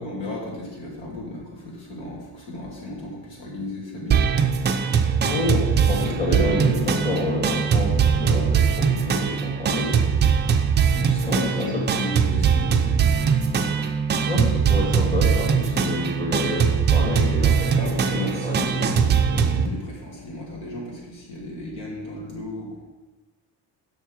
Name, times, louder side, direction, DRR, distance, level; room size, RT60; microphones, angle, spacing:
voice 1, 0.0-4.4 10.9-13.4 17.8-22.8, left 1 dB, 75° left, -4 dB, 3.2 m, -35 dB
sound 1, 4.1-19.7, right 6 dB, 25° right, 0.4 m, -21 dB
voice 2, 5.2-10.1 11.2-11.8 14.3-18.9, left 2 dB, 15° left, -6 dB, 2.2 m, -28 dB
7.4 x 6.2 x 5.5 m, 1.2 s
cardioid pair, 160°, 45 cm